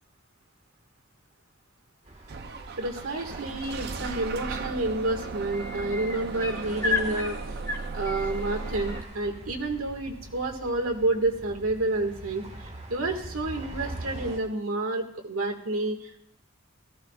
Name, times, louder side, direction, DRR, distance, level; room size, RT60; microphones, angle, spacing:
sound 1, 2.0-14.4, right 1 dB, 30° right, 1.6 m, -43 dB
Bus / Engine starting, 2.3-9.0, right 4 dB, 50° right, 0.6 m, -36 dB
voice 1, 2.8-7.4 7.9-12.4 12.9-16.1, right 2 dB, 90° right, 3 dB, 1.9 m, -29 dB
sound 2, 4.6-4.7 5.0-9.0 10.7-10.8, left 4 dB, 10° left, 1.8 m, -34 dB
17.0 x 14.5 x 2.4 m, 0.73 s
head